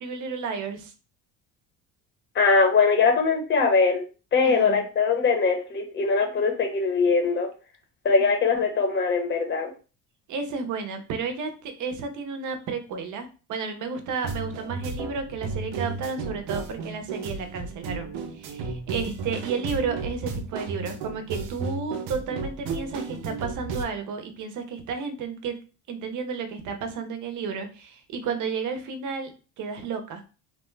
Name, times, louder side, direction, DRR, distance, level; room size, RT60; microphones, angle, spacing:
voice 1, 0.0-0.9 4.4-4.8 10.3-25.6 25.9-29.3 29.6-30.2, right 5 dB, 50° right, 6 dB, 0.7 m, -32 dB
voice 2, 2.3-4.0 4.3-7.5 8.0-9.7, left 4 dB, 30° left, 2 dB, 0.8 m, -21 dB
sound 1, 14.2-23.8, right 4 dB, 90° right, 0.7 m, -33 dB
2.9 x 2.2 x 3.2 m, 0.33 s
cardioid pair, 125°, 39 cm